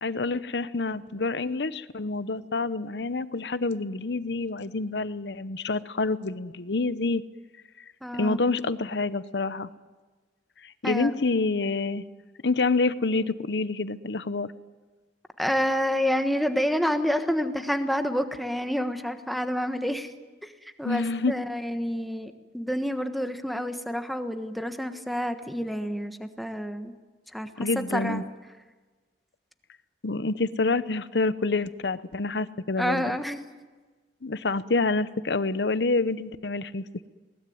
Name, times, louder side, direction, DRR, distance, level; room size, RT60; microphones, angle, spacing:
voice 1, 0.0-7.2 8.1-9.7 10.6-12.0 12.4-14.5 20.8-21.3 27.6-28.2 30.0-33.1 34.2-36.8, left 3 dB, 70° left, 14 dB, 0.9 m, -27 dB
voice 2, 8.0-8.4 10.8-11.1 15.4-20.1 20.4-26.9 27.3-28.2 32.8-33.4, equal, ahead, 7 dB, 1.3 m, -28 dB
21.0 x 19.0 x 9.4 m, 1.3 s
head